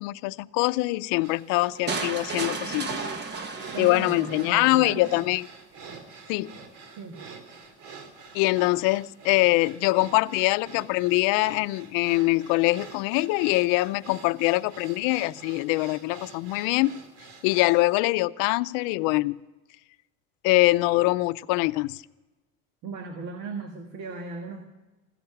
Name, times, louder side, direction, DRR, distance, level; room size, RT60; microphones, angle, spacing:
voice 1, 0.0-3.0 3.8-5.5 6.3-6.5 8.3-16.9 17.4-19.4 20.4-22.0, left 20 dB, 80° left, 16 dB, 0.6 m, -23 dB
sound 1, 1.2-17.8, right 5 dB, 90° right, 2.8 m, -46 dB
sound 2, 1.9-4.9, right 4 dB, 35° right, 1.2 m, -33 dB
voice 2, 3.7-5.3 7.0-7.2 22.8-24.7, right 4 dB, 65° right, 5 dB, 1.7 m, -37 dB
16.0 x 12.5 x 5.9 m, 1.1 s
cardioid pair, 155°, 31 cm